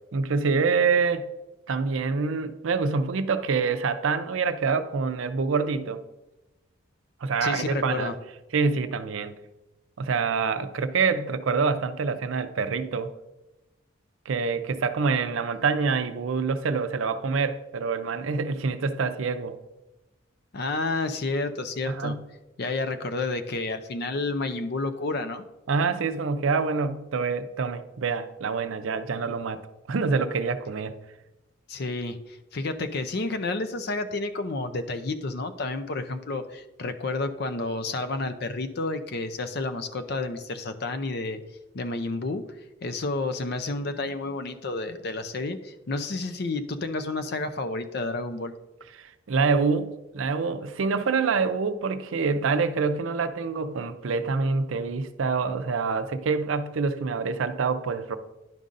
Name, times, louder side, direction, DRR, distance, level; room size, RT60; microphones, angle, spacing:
voice 1, 0.1-1.3 1.7-6.0 7.2-8.1 8.5-9.4 10.0-13.1 14.3-19.6 21.9-22.2 25.7-29.6 29.9-30.9 49.0-58.2, right 4 dB, 80° right, 0.5 m, -26 dB
voice 2, 7.4-8.1 20.5-22.2 22.6-25.5 31.7-41.4 41.7-42.5 42.8-48.5, left 3 dB, 50° left, 0.5 m, -30 dB
10.5 x 5.3 x 2.5 m
head